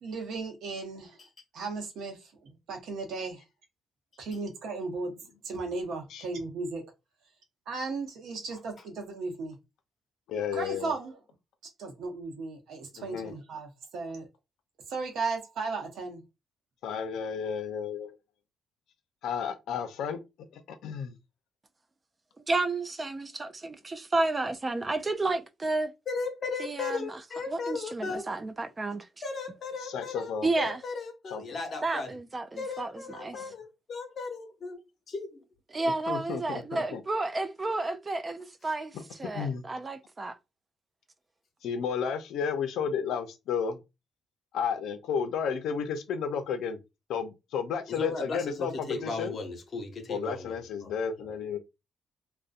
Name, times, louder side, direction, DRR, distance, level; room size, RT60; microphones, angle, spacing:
voice 1, 0.0-1.2 1.5-3.4 4.2-5.2 5.4-6.9 7.7-9.6 10.5-11.2 11.8-14.3 14.9-16.2, right 3 dB, 75° right, 0.8 m, -36 dB
voice 2, 10.3-10.9 13.0-13.3 16.8-18.1 19.2-20.2 20.5-21.2 29.8-30.5 31.3-31.4 36.1-37.0 38.9-39.0 39.3-39.6 41.6-43.8 44.5-46.8 47.1-49.4 50.1-51.6, left 6 dB, 80° left, 0.5 m, -32 dB
voice 3, 22.5-25.9 26.6-27.2 27.5-29.1 30.4-30.8 31.8-33.4 35.7-40.4, right 2 dB, 25° right, 0.3 m, -31 dB
voice 4, 26.1-28.3 29.2-32.1 32.6-34.8 35.1-35.4 47.9-50.9 51.2-51.3, left 4 dB, 50° left, 0.8 m, -36 dB
2.6 x 2.1 x 2.4 m
cardioid pair, 90°, 0 cm